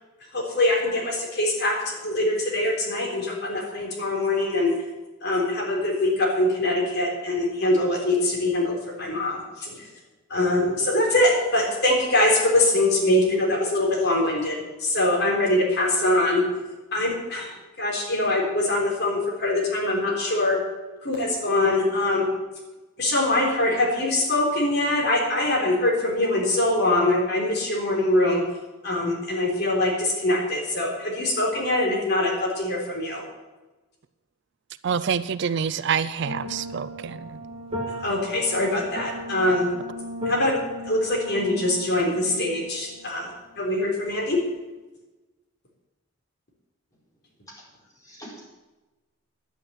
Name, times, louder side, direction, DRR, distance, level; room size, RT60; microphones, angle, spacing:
voice 1, 0.3-4.7 5.2-9.9 10.3-16.4 16.9-17.5 17.8-20.6 21.0-22.3 23.0-28.4 28.8-33.2 38.0-39.7 40.3-40.5 40.8-43.3 43.6-44.4, left 1 dB, 50° left, 3.8 m, -23 dB
voice 2, 34.8-37.4, right 6 dB, 55° right, 0.4 m, -27 dB
sound 1, 36.2-44.6, equal, 30° right, 2.6 m, -36 dB
voice 3, 47.5-48.5, equal, 15° left, 4.5 m, -46 dB
10.5 x 9.2 x 7.9 m
head